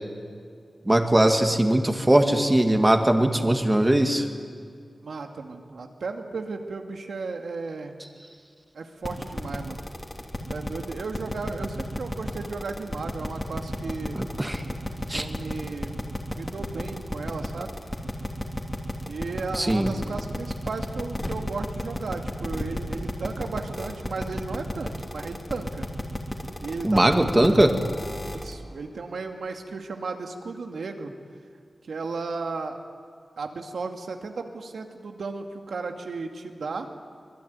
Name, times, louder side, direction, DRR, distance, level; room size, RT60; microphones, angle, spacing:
voice 1, 0.9-4.3 14.1-14.6 15.1-15.2 19.6-19.9 26.8-27.7, right 1 dB, 15° right, 5 dB, 2.1 m, -20 dB
voice 2, 5.0-8.0 8.7-9.8 10.5-14.2 15.1-16.0 16.4-17.7 19.1-25.9 26.6-27.8 28.2-31.1 31.9-32.8 33.4-36.9, right 4 dB, 90° right, 4 dB, 2.3 m, -35 dB
sound 1, 9.0-28.5, left 1 dB, 20° left, 3.2 m, -32 dB
25.5 x 21.0 x 9.7 m, 2.2 s
wide cardioid pair, 105°, 0 cm